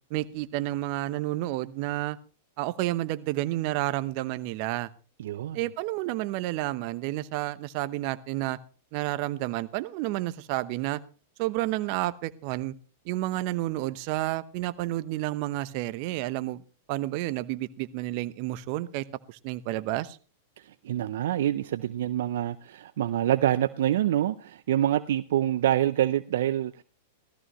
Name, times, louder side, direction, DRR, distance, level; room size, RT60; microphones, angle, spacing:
voice 1, 0.1-2.2 2.6-4.9 5.5-8.6 8.9-11.0 11.4-12.7 13.0-16.6 16.9-20.2, right 16 dB, 50° right, 16 dB, 0.9 m, -30 dB
voice 2, 5.2-5.6 20.6-26.8, right 12 dB, 70° right, 14 dB, 0.5 m, -26 dB
16.5 x 14.0 x 3.1 m, 0.35 s
hypercardioid pair, 110°, 0 cm